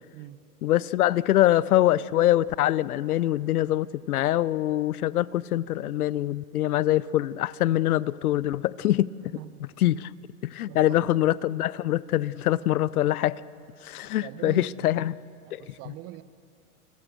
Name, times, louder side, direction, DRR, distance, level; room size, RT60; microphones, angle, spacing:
voice 1, 0.6-9.4 9.8-10.1 10.4-13.4 13.8-15.2 15.5-15.7, left 14 dB, 70° left, 21 dB, 0.7 m, -24 dB
voice 2, 9.2-10.0 10.7-11.1 14.2-15.0 15.5-16.2, right 15 dB, 30° right, 14 dB, 1.0 m, -43 dB
29.0 x 18.5 x 6.8 m, 2.6 s
hypercardioid pair, 125°, 45 cm